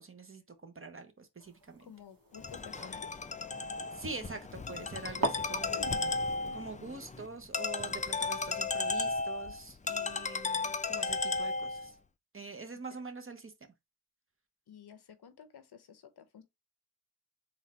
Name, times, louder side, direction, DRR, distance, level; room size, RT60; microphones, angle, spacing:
voice 1, 0.0-1.9 3.9-6.2 6.5-12.0 12.3-13.5, right 4 dB, 30° right, 0.9 m, -45 dB
sound 1, 1.4-4.3 4.9-5.0 5.2-9.8, right 2 dB, 55° right, 1.4 m, -43 dB
voice 2, 1.8-3.2 14.7-16.4, left 7 dB, 70° left, 0.8 m, -52 dB
Ringtone, 2.3-11.9, left 4 dB, 20° left, 0.3 m, -35 dB
4.0 x 2.5 x 4.2 m
wide cardioid pair, 90°, 40 cm